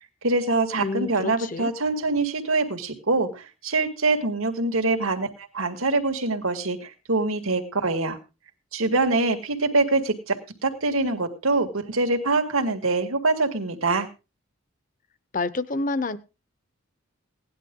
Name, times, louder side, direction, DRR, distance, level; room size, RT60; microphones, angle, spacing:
voice 1, 0.2-5.3 5.5-8.2 8.7-10.3 10.6-14.1, right 3 dB, 85° right, 6 dB, 2.1 m, -24 dB
voice 2, 0.8-1.7 15.3-16.2, left 3 dB, 40° left, 15 dB, 0.9 m, -28 dB
17.5 x 11.0 x 3.8 m, 0.30 s
head